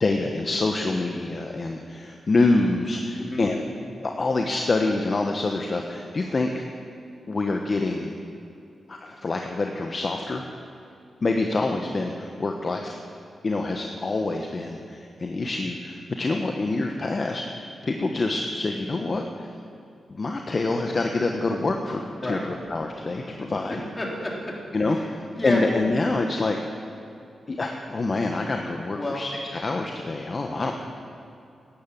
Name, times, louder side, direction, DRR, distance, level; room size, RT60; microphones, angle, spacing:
voice 1, 0.0-3.6 4.0-6.7 7.3-8.1 8.9-10.4 11.2-13.0 13.4-19.5 20.1-23.8 24.7-26.6 27.5-30.7, left 2 dB, 45° left, 3 dB, 1.1 m, -26 dB
voice 2, 23.7-24.5 24.9-25.1 25.3-25.6 28.9-29.2 30.6-30.7, left 1 dB, 25° left, -2 dB, 3.8 m, -30 dB
13.0 x 10.5 x 7.3 m, 2.6 s
cardioid pair, 50°, 0 cm